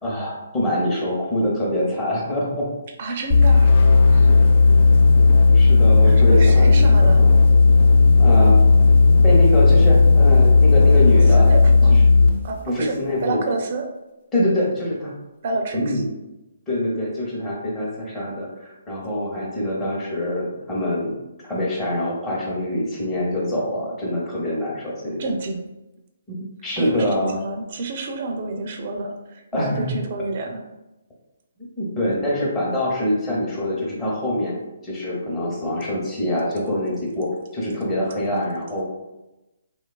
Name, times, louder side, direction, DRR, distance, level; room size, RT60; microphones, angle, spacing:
voice 1, 0.0-2.7 4.3-4.4 5.5-6.8 7.2-7.4 8.2-8.6 9.2-11.5 12.6-13.4 14.3-15.1 15.7-16.1 16.7-21.1 21.4-25.2 26.3-27.4 29.5-30.0 31.6-34.5 34.8-38.8, left 1 dB, 15° left, -5 dB, 0.7 m, -24 dB
voice 2, 3.0-4.4 4.9-5.0 6.0-7.3 11.3-12.0 12.4-13.8 15.4-16.0 25.2-25.6 26.8-30.7, right 3 dB, 45° right, 3 dB, 0.4 m, -29 dB
sound 1, 3.3-12.4, left 4 dB, 45° left, 0.4 m, -13 dB
2.9 x 2.2 x 2.2 m, 0.99 s
hypercardioid pair, 150°, 0 cm